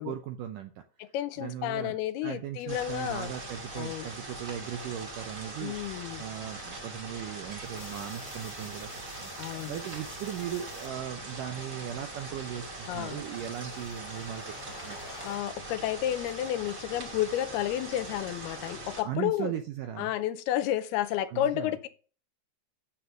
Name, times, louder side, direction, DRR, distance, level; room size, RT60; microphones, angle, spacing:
voice 1, 0.0-0.8 1.4-2.0 2.2-5.8 6.2-9.3 9.7-15.1 19.0-20.1 21.3-21.7, right 10 dB, 80° right, 1.9 m, -38 dB
voice 2, 1.0-3.3 3.7-4.1 5.6-6.2 9.4-9.8 12.9-13.2 15.2-19.5 20.0-21.9, left 12 dB, 80° left, 2.6 m, -31 dB
sound 1, 2.7-19.0, right 2 dB, 25° right, 1.8 m, -42 dB
sound 2, 7.6-10.9 12.0-15.4, left 5 dB, 50° left, 2.2 m, -50 dB
Coin (dropping), 10.9-13.3, right 4 dB, 60° right, 4.9 m, -62 dB
10.0 x 7.2 x 6.5 m
omnidirectional pair, 4.7 m